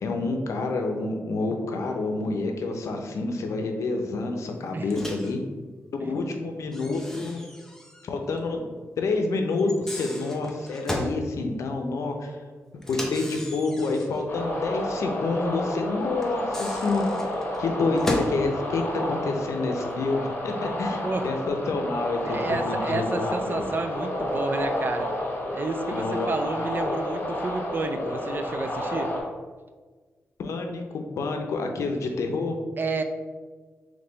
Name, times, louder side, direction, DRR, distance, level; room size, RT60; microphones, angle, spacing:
voice 1, 0.0-5.4 6.1-7.4 8.0-8.7 9.0-12.4 12.9-23.7 25.9-26.3 30.4-32.6, left 3 dB, 80° left, 4 dB, 0.6 m, -28 dB
voice 2, 4.7-5.1 6.0-6.1 21.0-21.3 22.2-25.1 25.5-29.1 32.8-33.0, right 3 dB, 45° right, 7 dB, 0.4 m, -30 dB
Microwave oven, 4.9-5.4 6.7-8.1 8.4-8.5 9.6-11.2 12.8-14.2 16.2-18.4, left 1 dB, 10° left, 0.7 m, -35 dB
sound 1, 14.3-29.2, left 1 dB, 45° left, 1.2 m, -30 dB
3.5 x 3.2 x 3.9 m, 1.4 s
cardioid pair, 80°, 5 cm